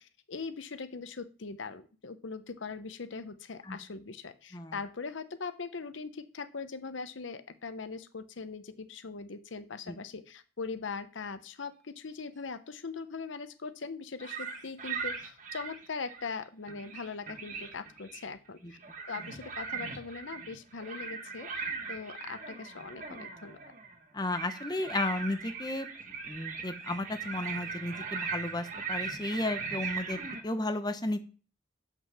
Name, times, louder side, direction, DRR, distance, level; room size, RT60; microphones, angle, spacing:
voice 1, 0.0-18.8 19.1-21.5 21.9-23.6, left 4 dB, 80° left, 12 dB, 0.8 m, -41 dB
sound 1, 14.2-16.3 16.7-18.3 18.7-30.4, right 5 dB, 40° right, 1.3 m, -39 dB
voice 2, 24.1-25.9 26.3-31.2, left 2 dB, 20° left, 8 dB, 0.7 m, -33 dB
7.7 x 5.9 x 5.9 m, 0.37 s
head